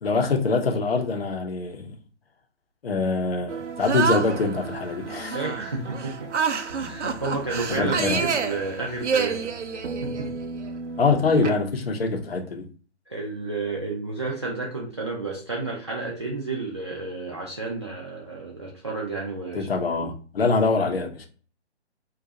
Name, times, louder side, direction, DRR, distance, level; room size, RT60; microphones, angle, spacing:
voice 1, 0.0-2.0 2.8-5.4 7.8-8.2 11.0-12.7 19.5-21.3, left 4 dB, 60° left, 0.8 m, -24 dB
sound 1, 3.5-11.5, right 5 dB, 85° right, 0.5 m, -29 dB
voice 2, 5.3-6.3 6.8-9.5 10.0-10.3 13.1-19.7 20.0-20.1, right 3 dB, 25° right, 0.4 m, -31 dB
2.6 x 2.4 x 4.0 m
figure-of-eight pair, 140°, 34 cm